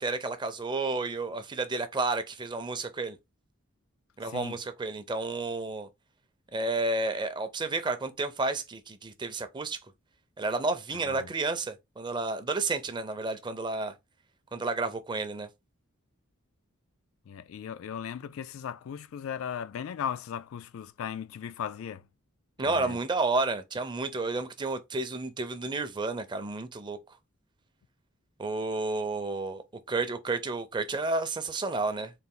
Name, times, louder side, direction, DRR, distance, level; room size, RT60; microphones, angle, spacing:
voice 1, 0.0-3.2 4.2-5.9 6.5-9.8 10.4-13.9 14.5-15.5 22.6-27.0 28.4-32.1, right 3 dB, 20° right, 0.5 m, -31 dB
voice 2, 4.2-4.6 11.1-11.3 17.3-22.0 22.6-23.0, left 8 dB, 70° left, 0.3 m, -37 dB
4.0 x 2.5 x 3.7 m
head